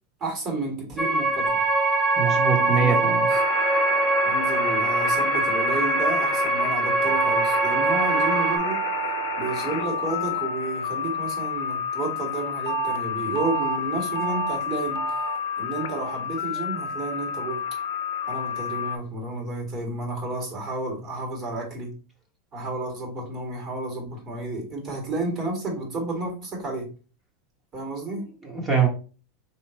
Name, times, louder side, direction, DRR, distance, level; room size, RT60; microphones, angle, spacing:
voice 1, 0.2-1.6 2.6-3.0 3.3-3.4 4.2-8.8 9.4-15.0 15.6-17.6 18.3-21.9 22.5-26.9 27.7-28.2, right 2 dB, 35° right, 1 dB, 1.9 m, -31 dB
sound 1, 1.0-8.6, right 1 dB, ahead, 0.6 m, -23 dB
sound 2, 1.5-5.9 7.1-11.5 12.7-13.0 13.4-13.8 14.2-14.6 15.0-15.4 15.8-16.2 16.6-17.0, right 13 dB, 80° right, 0.5 m, -31 dB
voice 2, 2.2-3.3 28.1-28.9, right 6 dB, 15° right, 0 dB, 1.1 m, -24 dB
sound 3, 3.3-19.0, left 8 dB, 80° left, 0.5 m, -31 dB
3.9 x 3.0 x 3.1 m, 0.36 s
supercardioid pair, 135°, 0 cm